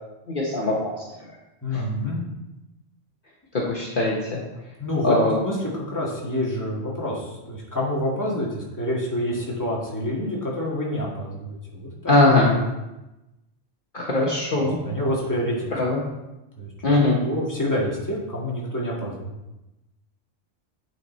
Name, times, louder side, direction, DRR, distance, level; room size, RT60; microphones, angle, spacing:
voice 1, 0.3-1.0 1.3-1.4 1.7-1.8 3.5-4.4 5.0-5.4 12.1-12.5 13.9-14.8 15.7-16.0 16.8-17.2, left 2 dB, 50° left, -3 dB, 1.2 m, -21 dB
voice 2, 1.6-2.2 4.8-12.6 14.5-15.7 16.6-16.7 17.2-19.3, left 1 dB, 15° left, -5 dB, 1.7 m, -27 dB
9.0 x 4.7 x 4.1 m, 0.98 s
omnidirectional pair, 1.2 m